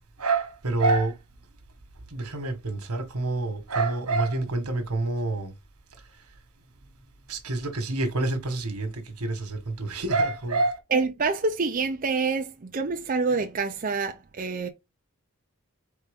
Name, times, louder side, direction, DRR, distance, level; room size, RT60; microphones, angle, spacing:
voice 1, 0.2-1.2 2.1-5.5 7.3-10.8, right 3 dB, 90° right, 1.3 m, -27 dB
voice 2, 10.9-14.7, right 4 dB, 40° right, 0.5 m, -27 dB
4.3 x 3.4 x 3.5 m
head